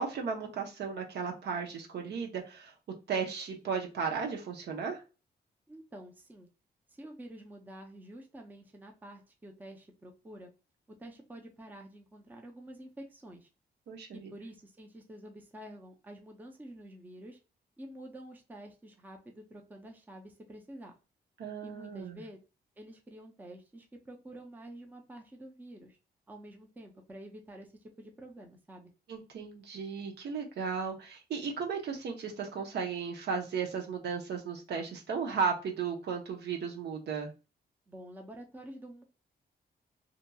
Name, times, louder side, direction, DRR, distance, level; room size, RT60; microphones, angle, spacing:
voice 1, 0.0-2.7 3.1-5.0 13.9-14.3 21.4-22.2 29.1-37.3, right 5 dB, 75° right, 1 dB, 0.8 m, -35 dB
voice 2, 5.7-6.5 6.9-10.5 10.9-13.5 14.1-17.4 17.8-20.9 21.6-22.4 22.8-26.0 26.3-27.7 28.0-28.9 37.9-39.0, right 1 dB, 10° right, 2 dB, 0.5 m, -49 dB
2.8 x 2.6 x 2.2 m, 0.31 s
wide cardioid pair, 135°, 18 cm